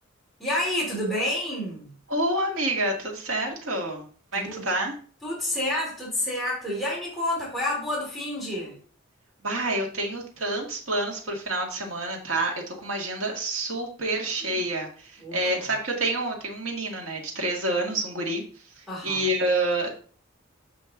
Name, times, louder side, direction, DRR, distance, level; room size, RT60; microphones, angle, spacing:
voice 1, 0.4-1.9 4.3-4.6 5.2-8.8 14.4-14.6 15.2-15.7 18.9-19.3, left 1 dB, ahead, -5 dB, 3.2 m, -29 dB
voice 2, 2.1-4.9 9.4-18.4 18.8-20.1, right 2 dB, 70° right, 1 dB, 2.0 m, -28 dB
7.8 x 5.2 x 3.8 m, 0.43 s
head